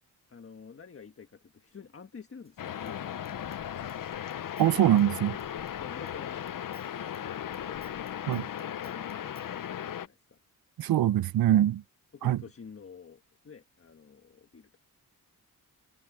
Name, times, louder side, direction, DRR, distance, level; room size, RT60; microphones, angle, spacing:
voice 1, 0.3-3.4 5.8-6.4 6.7-7.8 8.2-10.4 12.1-14.7, left 6 dB, 40° left, 1.5 m, -49 dB
Human voice / Scissors, 2.4-6.2 6.5-9.5, right 2 dB, 15° right, 7.2 m, -59 dB
sound 1, 2.6-10.1, left 10 dB, 60° left, 0.7 m, -37 dB
voice 2, 4.6-5.4 8.3-8.5 10.8-11.8 12.2-12.4, right 12 dB, 75° right, 0.5 m, -23 dB
wide cardioid pair, 165°, 36 cm